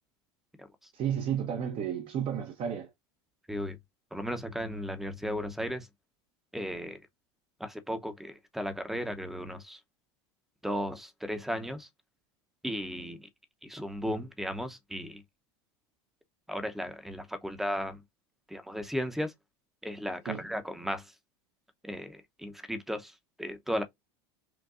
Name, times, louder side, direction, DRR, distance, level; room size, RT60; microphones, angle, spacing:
voice 1, 0.9-2.9 20.3-20.4, right 8 dB, 45° right, 0.9 m, -32 dB
voice 2, 4.1-5.9 6.5-7.0 7.6-9.8 10.6-11.9 12.6-13.3 13.6-15.2 16.5-18.0 18.5-19.3 19.8-21.1 21.8-23.8, equal, ahead, 0.7 m, -35 dB
6.1 x 2.2 x 2.5 m
supercardioid pair, 105°, 14 cm